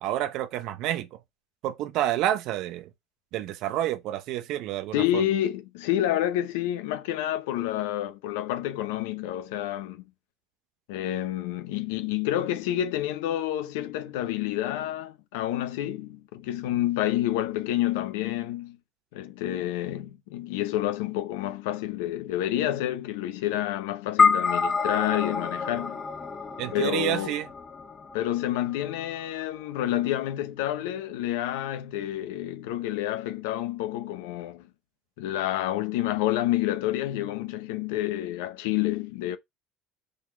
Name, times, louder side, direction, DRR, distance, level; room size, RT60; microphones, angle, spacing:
voice 1, 0.0-1.2 1.6-2.9 3.3-5.2 26.6-27.5, right 12 dB, 60° right, 0.9 m, -29 dB
voice 2, 4.9-10.0 10.9-18.8 19.1-26.0 26.7-27.3 28.1-34.6 35.2-39.4, left 13 dB, 70° left, 0.8 m, -29 dB
sound 1, 24.2-28.7, left 5 dB, 30° left, 1.0 m, -27 dB
5.3 x 3.7 x 5.6 m
hypercardioid pair, 65°, 0 cm